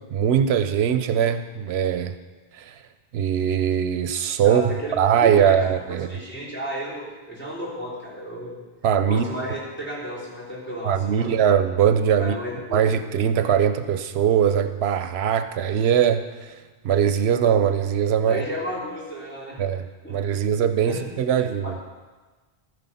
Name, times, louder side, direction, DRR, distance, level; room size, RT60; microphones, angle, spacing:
voice 1, 0.1-2.1 2.6-2.8 3.1-4.6 5.0-6.1 8.8-9.3 10.8-12.4 12.7-16.5 16.8-18.4 19.6-21.8, right 8 dB, 85° right, 10 dB, 0.9 m, -21 dB
voice 2, 4.4-4.9 5.2-8.6 9.0-11.3 12.2-12.8 18.2-19.6 20.0-20.4 20.8-21.0 21.6-21.7, equal, 10° left, -8 dB, 3.7 m, -33 dB
12.5 x 9.6 x 5.6 m, 1.3 s
omnidirectional pair, 1.0 m